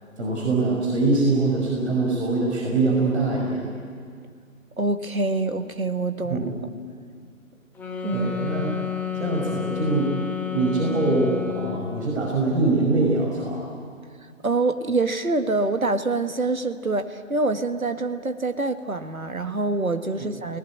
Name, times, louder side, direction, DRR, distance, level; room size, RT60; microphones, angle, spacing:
voice 1, 0.2-3.8 6.3-6.5 8.1-8.7 9.2-10.1 10.5-13.7 20.1-20.3, right 3 dB, 55° right, -1 dB, 5.4 m, -23 dB
voice 2, 4.8-6.5 8.0-8.3 14.4-20.6, right 3 dB, 90° right, 8 dB, 1.7 m, -25 dB
sound 1, 7.8-12.0, left 8 dB, 5° left, 1.3 m, -30 dB
29.5 x 19.0 x 8.7 m, 2.1 s
figure-of-eight pair, 140°, 41 cm